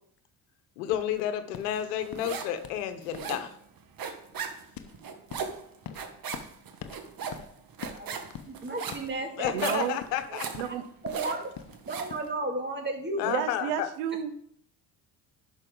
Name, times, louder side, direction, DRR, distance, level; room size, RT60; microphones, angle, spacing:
voice 1, 0.8-3.5 9.4-10.5 13.2-13.9, left 11 dB, 90° left, 10 dB, 1.0 m, -31 dB
sound 1, 0.9-12.3, left 8 dB, 50° left, 1.0 m, -46 dB
sound 2, 1.7-2.6 2.9-12.2, right 6 dB, 50° right, 1.5 m, -38 dB
voice 2, 7.9-9.8 10.3-10.4 10.6-10.7 11.0-11.5 11.9-13.5, right 2 dB, 25° right, 3 dB, 2.4 m, -34 dB
voice 3, 9.5-10.0 10.6-10.8 13.2-14.3, right 10 dB, 85° right, 11 dB, 0.8 m, -31 dB
11.0 x 5.8 x 3.9 m, 0.64 s
supercardioid pair, 70°, 46 cm